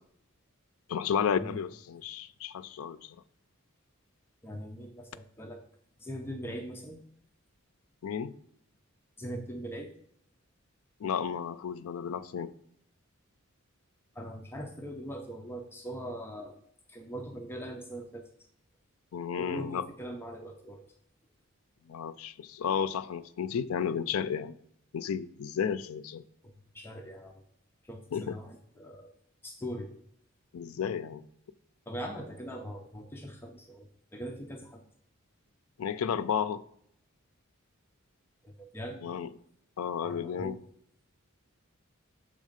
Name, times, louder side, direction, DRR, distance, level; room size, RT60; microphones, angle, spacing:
voice 1, 0.9-3.0 8.0-8.3 11.0-12.5 19.1-19.8 21.9-24.5 24.9-26.2 28.1-28.4 30.5-31.2 35.8-36.6 39.0-39.3 39.8-40.6, left 7 dB, 80° left, 0.4 m, -32 dB
voice 2, 4.4-5.6 6.0-7.0 9.2-9.9 14.2-16.6 16.9-18.3 19.4-20.9 26.4-27.3 27.8-29.1 29.4-30.0 31.9-34.8 38.4-39.1 40.0-40.6, equal, 10° left, 0.4 m, -41 dB
6.4 x 3.5 x 5.0 m
head